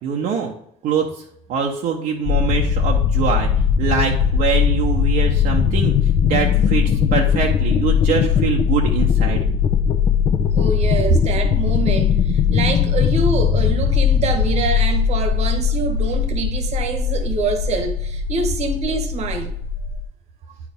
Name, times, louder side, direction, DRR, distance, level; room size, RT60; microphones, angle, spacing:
voice 1, 0.0-0.5 0.8-1.1 1.5-3.5 3.8-5.9 6.2-9.4, right 6 dB, 70° right, 1.0 m, -23 dB
sound 1, 2.2-20.0, left 7 dB, 55° left, 0.8 m, -19 dB
voice 2, 10.5-19.5, right 4 dB, 50° right, 1.3 m, -25 dB
8.9 x 4.8 x 3.6 m
cardioid pair, 125°, 15 cm